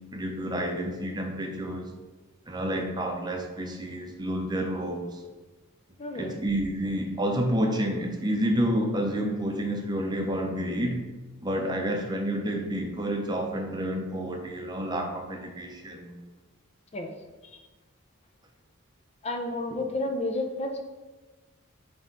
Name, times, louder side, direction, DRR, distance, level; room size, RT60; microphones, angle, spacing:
voice 1, 0.1-1.9 2.5-5.2 6.1-11.1 11.4-16.2 19.7-19.8, equal, 20° right, 3 dB, 0.7 m, -29 dB
voice 2, 6.0-6.4 16.9-17.1 19.2-20.8, left 2 dB, 30° left, 3 dB, 0.6 m, -31 dB
8.5 x 3.5 x 3.9 m, 1.2 s
head